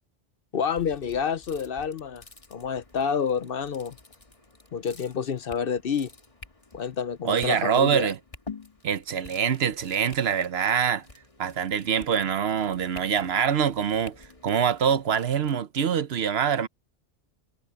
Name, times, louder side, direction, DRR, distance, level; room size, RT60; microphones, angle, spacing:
voice 1, 0.5-2.2 2.5-4.0 4.7-6.1 6.7-8.1, left 7 dB, 55° left, 0.9 m, -28 dB
sound 1, 0.6-15.5, left 3 dB, 30° left, 1.8 m, -49 dB
voice 2, 7.2-8.2 8.8-11.0 11.4-16.7, right 7 dB, 65° right, 1.0 m, -25 dB
omnidirectional pair, 1.2 m